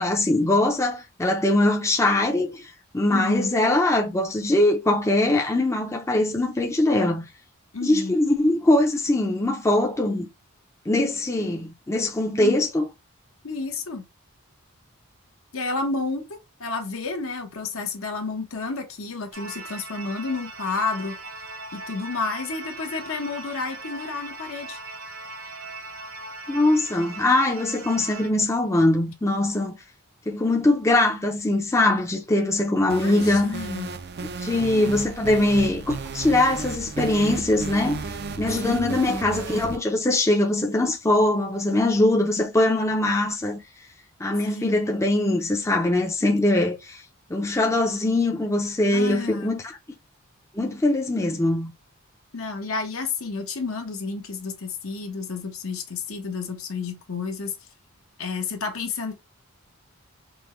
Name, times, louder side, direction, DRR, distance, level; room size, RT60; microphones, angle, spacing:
voice 1, 0.0-7.3 7.8-10.3 10.9-12.9 26.5-29.7 30.3-33.5 34.4-43.6 44.2-47.0 47.3-49.7 50.5-51.7, left 1 dB, 15° left, 0.5 m, -22 dB
voice 2, 3.1-3.5 7.7-8.2 12.4-12.6 13.4-14.0 15.5-21.2 21.7-24.8 33.0-33.9 38.6-39.2 44.4-44.8 48.9-49.5 52.3-57.5 58.2-59.1, left 4 dB, 70° left, 1.0 m, -31 dB
sound 1, 19.3-28.3, right 2 dB, 75° right, 1.0 m, -39 dB
sound 2, 32.9-39.8, right 4 dB, 45° right, 0.4 m, -34 dB
5.2 x 2.2 x 3.0 m
head